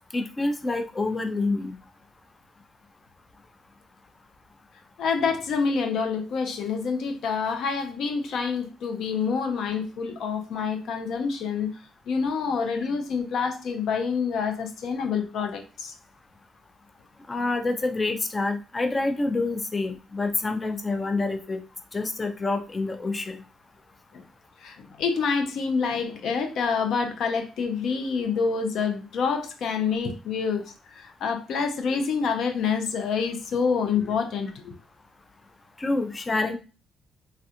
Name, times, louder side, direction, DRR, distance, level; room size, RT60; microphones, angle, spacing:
voice 1, 0.1-1.7 17.3-21.6 21.9-23.4 35.8-36.6, left 2 dB, 25° left, 0.4 m, -27 dB
voice 2, 5.0-11.7 12.1-15.9 24.1-24.2 24.6-34.7, left 5 dB, 75° left, 0.5 m, -27 dB
3.3 x 2.4 x 2.8 m
cardioid pair, 90°, 0 cm